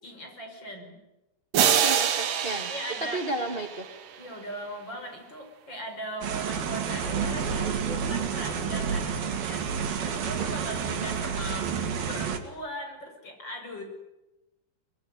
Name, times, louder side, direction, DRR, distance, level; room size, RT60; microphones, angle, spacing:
voice 1, 0.0-1.0 2.7-3.3 4.2-9.7 10.0-13.8, equal, 30° left, 4 dB, 6.2 m, -39 dB
sound 1, 1.5-4.2, right 9 dB, 70° right, 3.3 m, -26 dB
voice 2, 1.8-2.7 3.0-3.9 10.4-10.5 11.0-11.1, right 1 dB, 20° right, 5 dB, 1.6 m, -33 dB
sound 2, 6.2-12.4, right 6 dB, 85° right, 4.3 m, -29 dB
24.5 x 22.5 x 9.5 m, 0.98 s
omnidirectional pair, 4.1 m